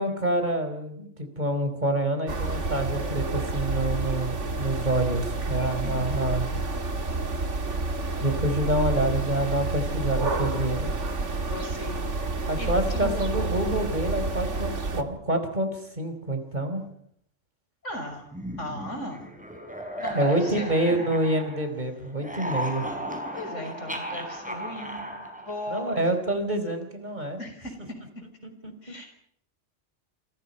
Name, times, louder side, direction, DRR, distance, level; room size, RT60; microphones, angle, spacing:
voice 1, 0.0-6.5 8.2-10.9 12.5-16.8 20.1-22.8 25.7-27.4 28.6-28.7, right 1 dB, 35° right, 6 dB, 4.6 m, -27 dB
sound 1, 2.3-15.0, right 3 dB, 75° right, 2.4 m, -29 dB
voice 2, 5.8-6.1 11.4-13.2 17.8-18.2 18.6-19.3 20.0-21.1 23.3-25.1 25.3-26.0 27.4-27.7 28.8-29.1, left 1 dB, 80° left, 4 dB, 6.5 m, -37 dB
sound 2, 18.3-21.8 22.1-26.1, right 1 dB, 5° right, 5.4 m, -36 dB
29.0 x 28.0 x 5.6 m, 0.67 s
omnidirectional pair, 1.2 m